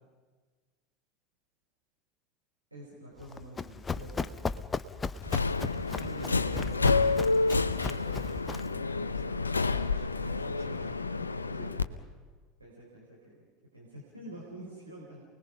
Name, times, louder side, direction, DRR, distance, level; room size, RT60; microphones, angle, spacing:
voice 1, 2.7-4.5 10.3-11.4 12.6-13.5 13.7-15.2, right 1 dB, 85° right, -4 dB, 4.3 m, -48 dB
Run, 3.2-8.8, left 4 dB, 20° left, 0.7 m, -37 dB
Subway metro underground, 5.2-11.8, left 3 dB, 80° left, 0.7 m, -29 dB
voice 2, 6.0-7.2 7.8-10.9 11.5-11.8, right 2 dB, 65° right, -1 dB, 6.3 m, -48 dB
29.0 x 20.0 x 5.8 m, 1.4 s
figure-of-eight pair, 75°, 0 cm